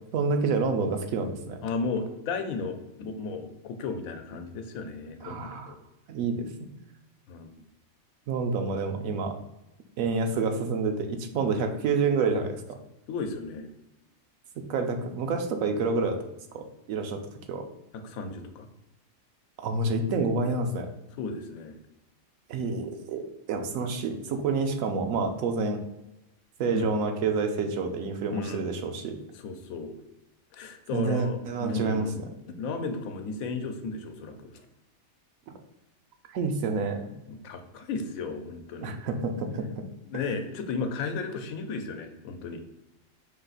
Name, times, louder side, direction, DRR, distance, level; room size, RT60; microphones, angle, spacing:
voice 1, 0.1-1.6 5.2-5.7 6.1-6.8 8.3-9.3 10.0-12.8 14.6-16.2 16.5-17.2 17.5-17.6 19.6-20.9 22.5-23.2 23.5-25.8 26.6-29.2 30.9-32.1 36.3-37.1 38.8-39.7, right 4 dB, 80° right, 5 dB, 1.0 m, -28 dB
voice 2, 1.6-5.8 7.3-7.5 13.1-13.7 17.9-18.7 21.2-21.7 26.7-26.9 28.3-28.6 29.3-30.0 30.5-32.2 32.6-34.5 37.3-39.0 40.1-42.6, left 4 dB, 85° left, 6 dB, 1.0 m, -34 dB
5.2 x 2.4 x 3.9 m, 0.93 s
omnidirectional pair, 1.4 m